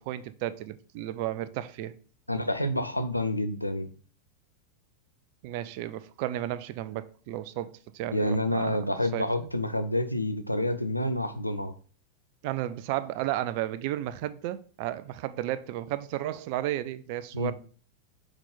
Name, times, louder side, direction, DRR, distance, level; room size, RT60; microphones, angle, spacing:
voice 1, 0.0-1.9 5.4-8.8 9.1-9.5 12.4-17.5, right 13 dB, 45° right, 0.4 m, -33 dB
voice 2, 2.3-3.9 8.1-11.7 17.3-17.5, left 1 dB, 85° left, 0.5 m, -28 dB
6.1 x 4.0 x 3.9 m
figure-of-eight pair, 90°, 0 cm